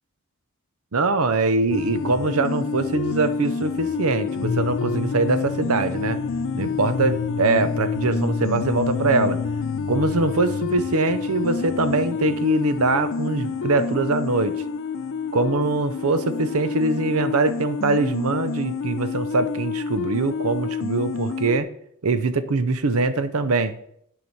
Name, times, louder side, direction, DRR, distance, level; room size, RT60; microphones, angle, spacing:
voice 1, 0.9-6.2 6.5-9.4 9.9-14.5 15.3-21.7 22.0-23.7, right 3 dB, 80° right, 12 dB, 0.7 m, -23 dB
sound 1, 1.7-21.6, left 5 dB, 60° left, 0.4 m, -28 dB
10.5 x 4.9 x 5.5 m, 0.69 s
head